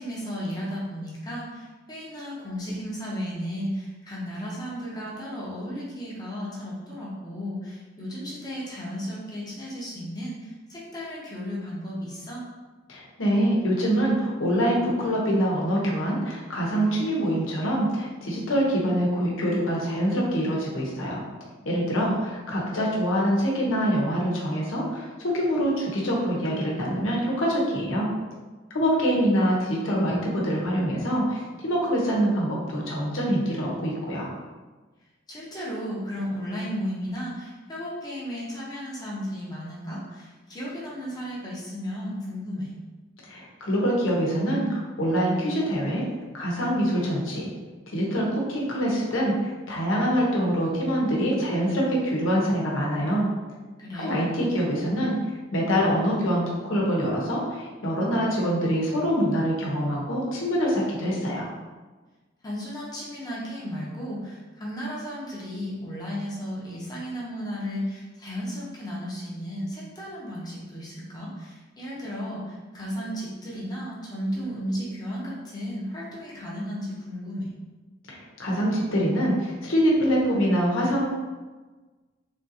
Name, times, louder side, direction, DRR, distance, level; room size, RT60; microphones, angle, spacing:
voice 1, 0.0-12.4 21.9-22.3 35.3-42.7 53.8-54.1 62.4-77.5, equal, 20° left, -6 dB, 0.7 m, -34 dB
voice 2, 12.9-21.2 21.6-28.1 28.7-34.3 43.3-46.0 46.3-47.5 47.9-53.3 53.9-55.1 55.5-61.5 78.1-81.1, equal, 85° left, -3 dB, 0.9 m, -25 dB
3.5 x 2.5 x 2.7 m, 1.3 s
head